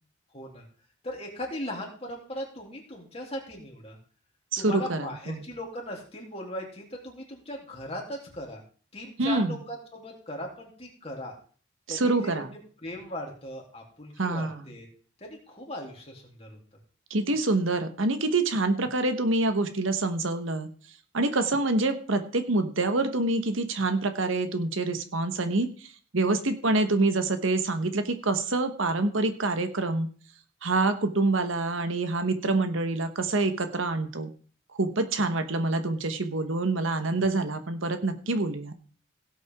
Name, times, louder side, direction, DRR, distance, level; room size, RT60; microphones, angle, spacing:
voice 1, 0.3-0.7 1.0-4.0 4.6-8.6 8.9-11.3 11.9-14.9 15.2-16.6 37.1-37.3, left 1 dB, 30° left, -1 dB, 3.3 m, -38 dB
voice 2, 4.5-5.4 9.2-9.5 11.9-12.5 14.2-14.7 17.1-20.7 21.1-30.1 30.6-34.3 34.8-38.8, right 2 dB, 80° right, 8 dB, 1.3 m, -26 dB
17.0 x 8.0 x 3.7 m, 0.43 s
head